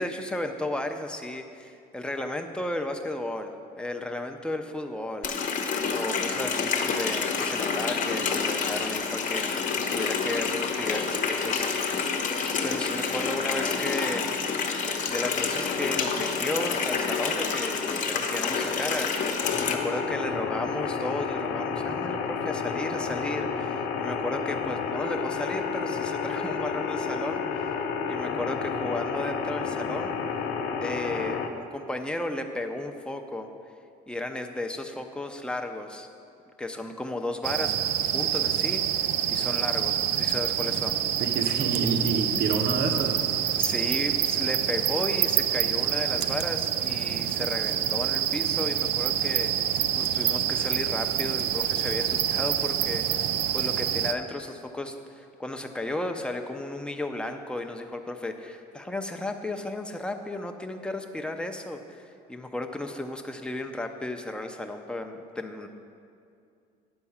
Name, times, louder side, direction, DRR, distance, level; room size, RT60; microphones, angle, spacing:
voice 1, 0.0-5.3 5.9-12.0 12.6-14.3 14.7-27.7 28.1-30.1 30.8-33.5 34.1-36.1 36.6-37.7 38.1-38.8 39.3-41.0 43.5-65.7, left 1 dB, 5° left, 5 dB, 0.6 m, -34 dB
Water tap faucet, 5.2-19.7, left 5 dB, 50° left, 0.9 m, -28 dB
sound 1, 19.4-31.5, left 6 dB, 90° left, 0.7 m, -30 dB
sound 2, 37.4-54.1, right 11 dB, 80° right, 0.4 m, -27 dB
voice 2, 41.2-43.2, right 3 dB, 65° right, 4 dB, 1.1 m, -27 dB
9.7 x 4.5 x 7.2 m, 2.4 s
cardioid pair, 110°, 17 cm